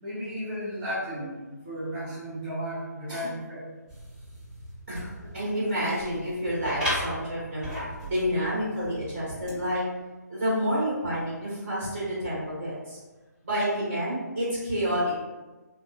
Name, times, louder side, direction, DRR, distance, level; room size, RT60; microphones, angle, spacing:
voice 1, 0.0-3.6, equal, 25° right, -10 dB, 0.8 m, -34 dB
sound 1, 3.9-9.5, equal, 5° right, 1.1 m, -37 dB
voice 2, 4.9-7.7 8.1-9.8 10.3-13.0 13.4-15.2, equal, 40° right, -8 dB, 1.3 m, -29 dB
2.8 x 2.4 x 2.3 m, 1.2 s
figure-of-eight pair, 145°, 10 cm